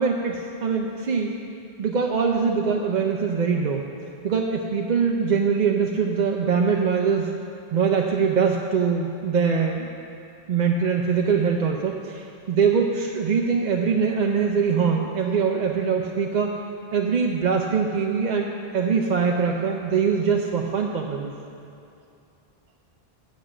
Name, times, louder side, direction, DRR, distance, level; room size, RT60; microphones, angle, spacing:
voice 1, 0.0-1.4 1.8-3.9 4.2-7.3 7.7-9.9 10.5-16.5 16.9-21.4, right 5 dB, 55° right, 1 dB, 0.6 m, -23 dB
8.0 x 6.3 x 7.5 m, 2.6 s
omnidirectional pair, 1.0 m